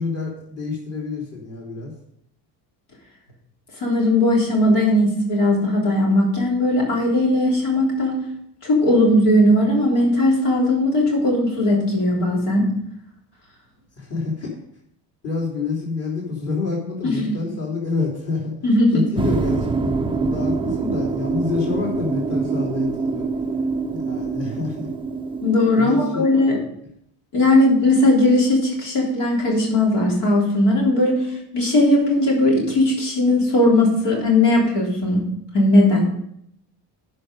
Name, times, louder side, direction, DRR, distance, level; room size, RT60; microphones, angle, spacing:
voice 1, 0.0-1.9 14.0-14.5 15.2-18.5 18.9-23.3 23.9-24.9 25.8-26.2, left 4 dB, 35° left, -3 dB, 3.0 m, -27 dB
voice 2, 3.8-8.2 8.6-12.7 17.0-17.4 18.6-19.1 25.4-26.6 27.3-31.3 31.5-35.2 35.5-36.0, left 1 dB, 65° left, -3 dB, 3.6 m, -18 dB
sound 1, 19.2-26.1, right 4 dB, 10° right, 0.4 m, -25 dB
10.5 x 5.3 x 5.3 m, 0.72 s
cardioid pair, 105°, 44 cm